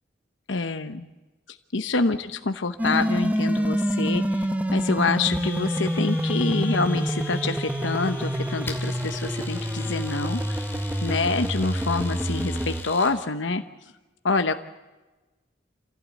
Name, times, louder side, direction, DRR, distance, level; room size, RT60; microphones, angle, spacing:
voice 1, 0.5-1.1 1.5-10.7 11.0-13.6 14.2-14.5, left 3 dB, 85° left, 8 dB, 0.9 m, -27 dB
sound 1, 2.8-12.8, equal, 10° right, 0.9 m, -27 dB
Domestic sounds home sounds, 5.2-13.2, left 3 dB, 10° left, 2.4 m, -41 dB
27.0 x 16.0 x 8.2 m, 1.1 s
head